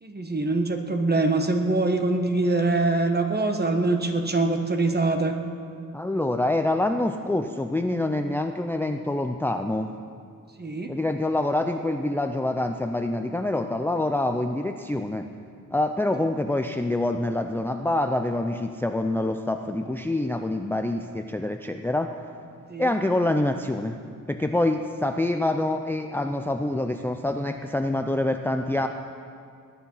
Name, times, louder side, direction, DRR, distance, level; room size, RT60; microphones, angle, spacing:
voice 1, 0.0-5.4 10.6-10.9 22.7-23.0, right 2 dB, 30° right, 5 dB, 1.4 m, -24 dB
voice 2, 5.9-9.9 10.9-15.3 15.7-22.1 22.8-24.0 24.3-28.9, left 1 dB, 5° left, 6 dB, 0.5 m, -26 dB
19.0 x 10.0 x 5.6 m, 2.3 s
cardioid pair, 95°, 33 cm